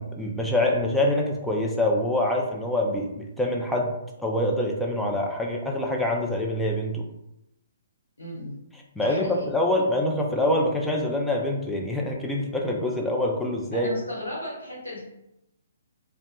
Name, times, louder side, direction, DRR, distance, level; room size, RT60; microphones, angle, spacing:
voice 1, 0.0-3.9 4.2-7.0 9.0-13.9, left 1 dB, ahead, -1 dB, 0.3 m, -25 dB
voice 2, 8.2-8.6 9.0-9.5 13.7-15.0, left 1 dB, 85° left, -6 dB, 1.2 m, -35 dB
2.2 x 2.1 x 2.9 m, 0.86 s
figure-of-eight pair, 130°, 0 cm